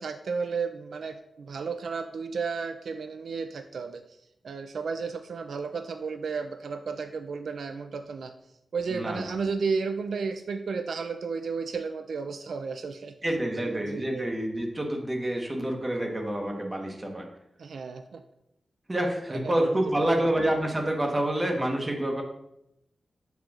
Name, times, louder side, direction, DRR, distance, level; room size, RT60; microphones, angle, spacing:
voice 1, 0.0-4.0 4.4-8.3 8.7-13.1 13.6-14.3 17.6-18.2 19.4-20.3, right 5 dB, 75° right, 8 dB, 0.3 m, -33 dB
voice 2, 8.9-9.2 13.2-17.3 18.9-22.2, right 1 dB, 20° right, 2 dB, 1.2 m, -28 dB
6.8 x 6.1 x 2.5 m, 0.81 s
wide cardioid pair, 90°, 0 cm